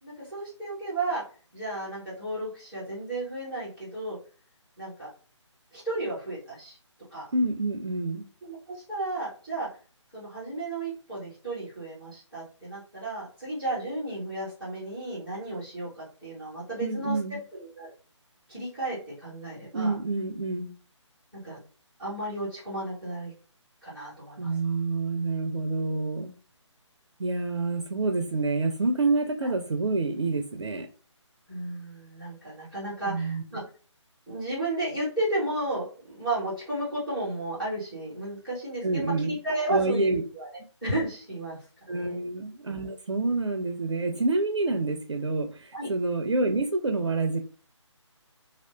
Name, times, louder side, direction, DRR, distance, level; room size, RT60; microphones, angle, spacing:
voice 1, 0.0-1.2 1.5-4.2 4.8-5.1 5.7-6.8 7.1-7.3 8.4-9.7 10.1-17.2 17.5-17.9 18.5-19.9 21.4-21.6 22.0-23.3 23.8-24.5 29.4-29.5 31.5-33.6 34.3-40.5 40.8-41.6 41.9-42.2 45.7-45.9, right 2 dB, ahead, -15 dB, 0.4 m, -33 dB
voice 2, 7.3-8.2 16.8-17.4 19.7-20.7 24.4-26.3 27.2-30.9 33.0-33.4 38.8-39.4 39.7-40.2 41.9-47.4, right 3 dB, 65° right, 5 dB, 0.4 m, -27 dB
2.8 x 2.0 x 2.2 m, 0.38 s
figure-of-eight pair, 150°, 16 cm